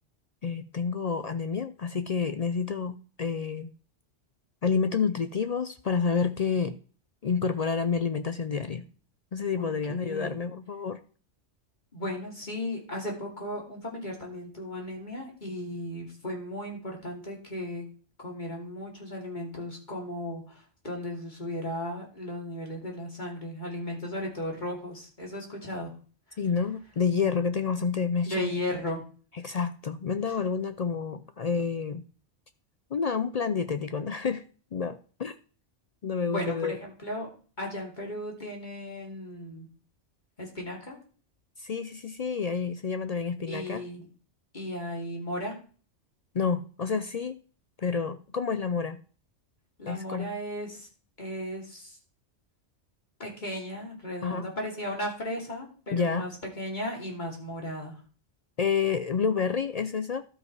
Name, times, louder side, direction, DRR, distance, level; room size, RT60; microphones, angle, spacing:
voice 1, 0.4-3.7 4.6-6.8 7.2-8.8 9.3-11.0 26.4-28.5 29.4-32.0 32.9-34.4 34.7-35.4 36.0-36.8 41.6-43.8 46.3-47.4 47.8-49.0 49.9-50.3 54.2-54.5 55.9-56.3 58.6-60.2, left 5 dB, 60° left, 0.4 m, -29 dB
voice 2, 9.6-10.4 11.9-17.9 18.2-25.9 26.3-26.4 28.2-29.0 36.2-37.3 37.6-39.7 40.4-41.0 43.5-44.1 44.5-45.5 49.8-50.9 51.2-52.0 53.2-56.3 56.6-58.0, left 1 dB, 40° left, 2.8 m, -35 dB
12.5 x 5.3 x 4.7 m
omnidirectional pair, 1.2 m